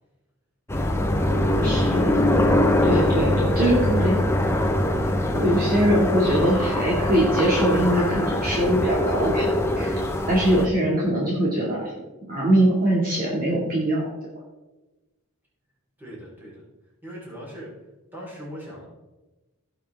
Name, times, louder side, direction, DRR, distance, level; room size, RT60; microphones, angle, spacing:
sound 1, 0.7-10.7, left 1 dB, 10° left, 0.8 m, -23 dB
voice 1, 1.6-2.2 2.8-4.2 5.4-9.5 9.8-11.9 12.3-14.1, right 1 dB, 40° right, -5 dB, 2.2 m, -22 dB
voice 2, 16.0-16.6 17.0-17.8 18.1-18.9, equal, 10° right, -6 dB, 4.0 m, -39 dB
16.5 x 6.3 x 3.6 m, 1.1 s
head